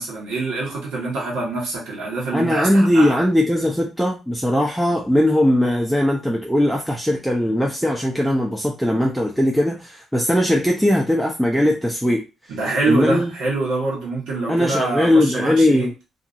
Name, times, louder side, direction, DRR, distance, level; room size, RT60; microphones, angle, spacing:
voice 1, 0.0-3.2 12.5-15.9, right 3 dB, 90° right, -5 dB, 1.4 m, -25 dB
voice 2, 2.3-12.2 12.9-13.3 14.5-15.9, left 1 dB, ahead, -1 dB, 0.5 m, -19 dB
2.8 x 2.5 x 2.5 m, 0.27 s
cardioid pair, 90°, 0 cm